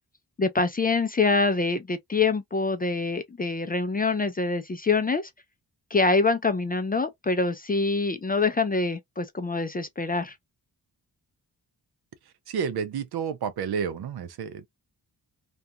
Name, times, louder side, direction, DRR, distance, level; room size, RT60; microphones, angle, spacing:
voice 1, 0.4-5.3 5.9-10.3, left 3 dB, 25° left, 0.3 m, -25 dB
voice 2, 12.5-14.7, right 7 dB, 70° right, 0.5 m, -30 dB
2.4 x 2.3 x 2.6 m
wide cardioid pair, 100°, 40 cm